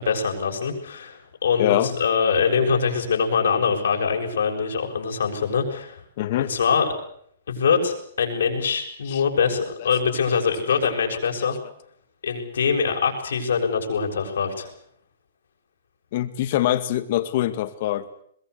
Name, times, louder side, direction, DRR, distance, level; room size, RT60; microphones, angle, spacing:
voice 1, 0.0-6.0 6.4-6.9 7.5-11.6 12.2-14.7, left 6 dB, 85° left, 3 dB, 6.7 m, -23 dB
voice 2, 1.6-1.9 6.2-6.5 9.1-9.2 9.8-9.9 10.3-10.4 11.1-11.2 16.1-18.2, left 13 dB, 50° left, 12 dB, 2.1 m, -24 dB
22.5 x 21.5 x 8.2 m, 0.65 s
hypercardioid pair, 155°, 0 cm